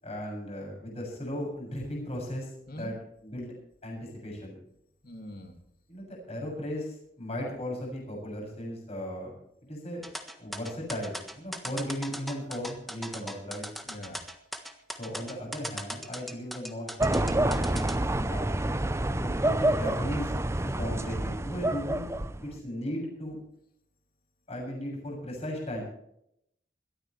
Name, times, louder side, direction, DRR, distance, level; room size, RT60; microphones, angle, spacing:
voice 1, 0.0-2.9 3.2-3.5 3.8-4.6 5.9-9.3 9.7-10.0 10.4-13.6 15.0-17.9 18.2-18.8 19.1-20.3 20.8-22.0 22.4-23.4 24.5-25.8, equal, 35° left, -1 dB, 7.2 m, -36 dB
voice 2, 5.0-5.6 13.8-14.2, left 1 dB, 55° left, 5 dB, 2.6 m, -43 dB
sound 1, 10.0-18.0, equal, ahead, 1.5 m, -39 dB
stone road, 17.0-22.6, right 1 dB, 15° right, 0.7 m, -28 dB
21.5 x 14.0 x 3.3 m, 0.75 s
head